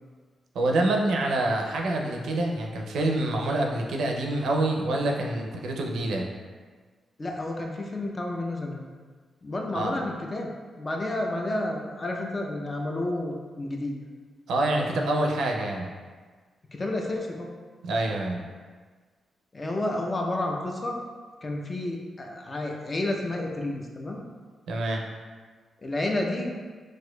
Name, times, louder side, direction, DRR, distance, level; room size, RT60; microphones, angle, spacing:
voice 1, 0.5-6.3 9.7-10.0 14.5-15.9 17.8-18.4 24.7-25.0, right 2 dB, 80° right, 1 dB, 0.4 m, -26 dB
voice 2, 7.2-8.8 9.4-10.5 10.8-14.0 16.7-17.5 19.5-21.0 21.4-24.2 25.8-26.5, left 1 dB, 30° left, 0 dB, 0.5 m, -30 dB
4.2 x 2.5 x 2.2 m, 1.5 s
cardioid pair, 80°, 0 cm